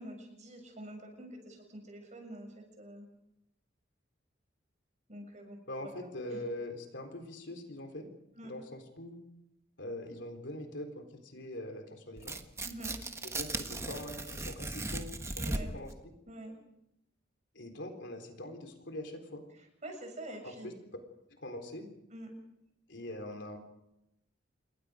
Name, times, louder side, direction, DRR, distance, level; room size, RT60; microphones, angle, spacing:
voice 1, 0.0-3.1 5.1-5.6 5.8-6.4 8.4-8.5 12.6-13.0 15.4-15.7 16.3-16.6 19.5-20.7 22.1-22.3, right 1 dB, 40° right, 4 dB, 6.9 m, -46 dB
voice 2, 5.7-8.1 8.4-9.2 9.8-12.4 13.2-15.9 17.5-19.4 20.4-20.7 21.3-21.9 22.9-23.6, left 1 dB, 70° left, 5 dB, 3.9 m, -43 dB
Tearing, 12.2-15.9, right 2 dB, 15° right, 1.2 m, -37 dB
28.0 x 22.5 x 5.1 m, 0.82 s
head